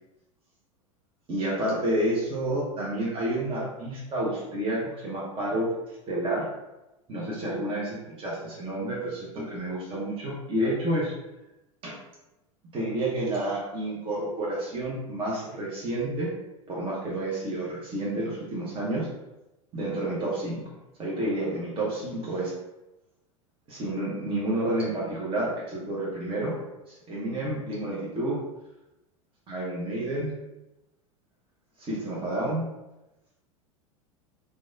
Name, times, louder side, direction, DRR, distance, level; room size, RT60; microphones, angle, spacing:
voice 1, 1.3-5.7 6.1-6.4 7.1-11.1 11.8-11.9 12.7-16.3 16.7-19.1 19.7-20.6 21.0-22.5 23.7-26.6 26.9-28.4 29.5-30.3 31.8-32.6, right 1 dB, 30° right, -5 dB, 0.8 m, -30 dB
3.3 x 2.2 x 2.6 m, 0.98 s
figure-of-eight pair, 85°, 18 cm